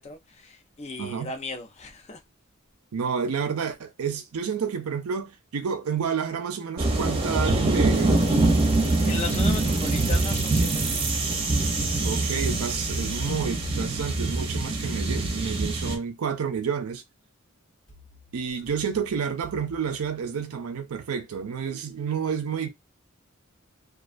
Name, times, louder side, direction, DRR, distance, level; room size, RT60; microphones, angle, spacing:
voice 1, 0.0-2.2 9.0-11.3, left 3 dB, 30° left, 0.5 m, -36 dB
voice 2, 1.0-1.3 2.9-8.2 12.0-17.0 18.3-22.7, right 6 dB, 85° right, 0.5 m, -30 dB
sound 1, 6.8-16.0, right 2 dB, 25° right, 0.6 m, -24 dB
sound 2, 17.9-20.9, left 5 dB, 60° left, 1.2 m, -51 dB
2.4 x 2.2 x 2.5 m
head